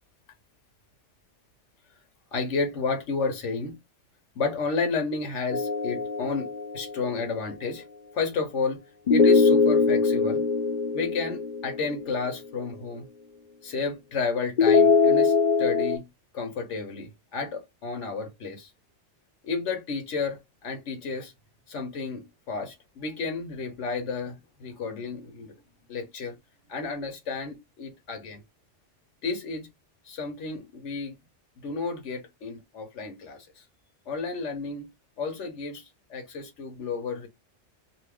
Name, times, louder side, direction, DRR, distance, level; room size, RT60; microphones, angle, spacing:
voice 1, 2.3-3.8 4.4-6.5 6.7-7.8 8.1-8.8 9.1-10.4 10.9-13.1 13.6-16.0 16.3-18.7 19.4-21.3 21.7-25.5 25.9-26.4 26.7-28.4 29.2-29.7 30.0-31.2 31.6-33.6 34.1-34.9 35.2-35.8 36.1-37.3, left 4 dB, 80° left, 1.1 m, -31 dB
sound 1, 5.5-7.1 9.1-12.2 14.6-16.0, left 4 dB, 50° left, 0.7 m, -22 dB
2.6 x 2.5 x 3.4 m
omnidirectional pair, 1.2 m